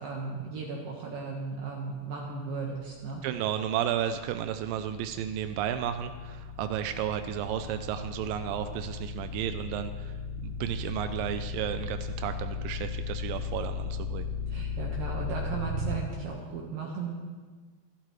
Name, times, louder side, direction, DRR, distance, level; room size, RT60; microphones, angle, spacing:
voice 1, 0.0-3.2 14.5-17.1, right 4 dB, 65° right, -2 dB, 2.9 m, -36 dB
sound 1, 2.9-16.0, left 4 dB, 15° left, 3.9 m, -36 dB
voice 2, 3.2-10.1 10.4-14.3, right 10 dB, 85° right, 8 dB, 2.0 m, -33 dB
27.5 x 12.0 x 3.2 m, 1.5 s
omnidirectional pair, 4.7 m